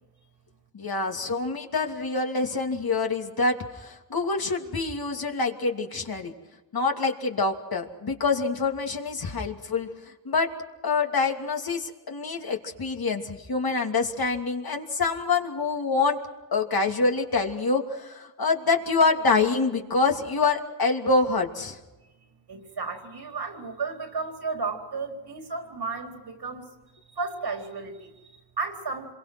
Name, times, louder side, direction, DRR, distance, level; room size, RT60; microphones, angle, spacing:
voice 1, 0.7-6.3 6.7-9.9 10.2-10.5 10.8-16.2 16.5-21.8, left 4 dB, 55° left, 3 dB, 2.8 m, -26 dB
voice 2, 22.5-26.6 27.1-29.1, right 4 dB, 60° right, 3 dB, 4.4 m, -33 dB
26.5 x 23.0 x 6.2 m, 1.1 s
supercardioid pair, 40°, 44 cm